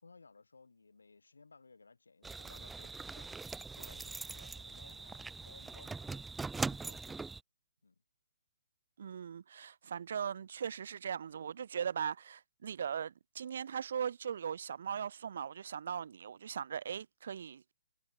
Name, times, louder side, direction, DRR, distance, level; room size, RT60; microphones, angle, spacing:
voice 1, 0.0-3.4 3.7-6.3 6.6-7.2 7.8-8.0, left 4 dB, 85° left, 3.7 m, -60 dB
sound 1, 2.2-7.4, right 4 dB, 5° right, 0.7 m, -42 dB
voice 2, 9.0-17.7, right 8 dB, 60° right, 0.8 m, -39 dB
hypercardioid pair, 140°, 0 cm